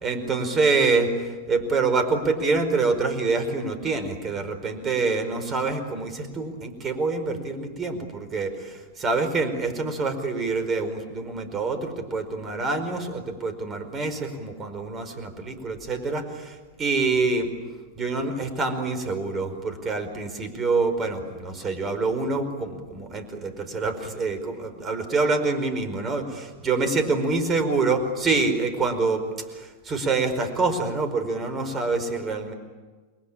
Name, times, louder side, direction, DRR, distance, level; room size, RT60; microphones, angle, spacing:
voice 1, 0.0-17.5 18.0-29.2 29.5-32.5, right 3 dB, 25° right, 9 dB, 4.8 m, -26 dB
29.5 x 22.5 x 9.0 m, 1.3 s
figure-of-eight pair, 90°, 0 cm